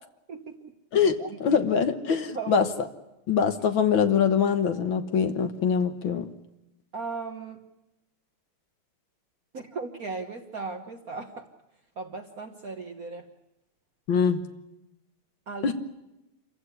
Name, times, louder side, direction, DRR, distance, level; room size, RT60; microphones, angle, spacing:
voice 1, 0.3-0.6 1.2-1.6 2.1-2.7 6.9-7.6 9.5-11.5 12.0-13.3 15.5-15.7, right 4 dB, 45° right, 4 dB, 1.6 m, -37 dB
voice 2, 0.9-2.7 3.3-6.3 14.1-14.4 15.6-15.7, left 7 dB, 70° left, 8 dB, 2.0 m, -23 dB
27.0 x 15.0 x 9.9 m, 0.93 s
omnidirectional pair, 2.3 m